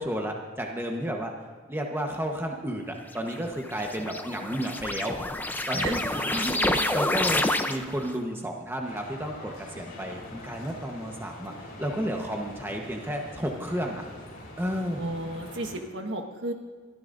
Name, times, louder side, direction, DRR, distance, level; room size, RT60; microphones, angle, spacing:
voice 1, 0.0-1.3 1.7-5.2 5.7-14.0 14.6-15.0, equal, 10° right, 1 dB, 1.1 m, -32 dB
sound 1, 3.2-8.1, left 2 dB, 10° left, 0.7 m, -28 dB
voice 2, 5.8-7.4 15.0-16.5, right 2 dB, 65° right, 4 dB, 1.6 m, -35 dB
sound 2, 8.8-15.8, left 1 dB, 50° left, 4.5 m, -44 dB
22.5 x 13.5 x 2.6 m, 1.5 s
head